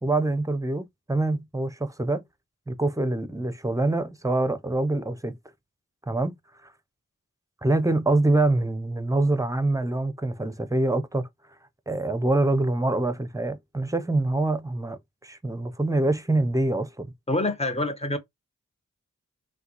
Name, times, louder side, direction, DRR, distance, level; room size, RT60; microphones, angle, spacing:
voice 1, 0.0-2.2 2.7-5.3 6.1-6.4 7.6-11.3 11.9-17.1, right 2 dB, 10° right, 0.6 m, -25 dB
voice 2, 17.3-18.2, left 2 dB, 20° left, 0.9 m, -26 dB
3.6 x 2.3 x 2.9 m
cardioid pair, 40°, 33 cm